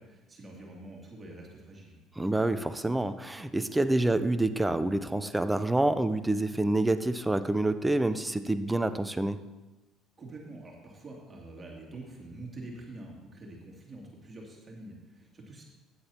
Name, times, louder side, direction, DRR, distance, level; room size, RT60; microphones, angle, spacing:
voice 1, 0.0-2.0 10.2-15.6, right 2 dB, 25° right, -2 dB, 2.6 m, -46 dB
voice 2, 2.2-9.4, right 2 dB, 10° right, 12 dB, 0.6 m, -27 dB
15.0 x 9.3 x 2.9 m, 1.1 s
figure-of-eight pair, 55°, 0 cm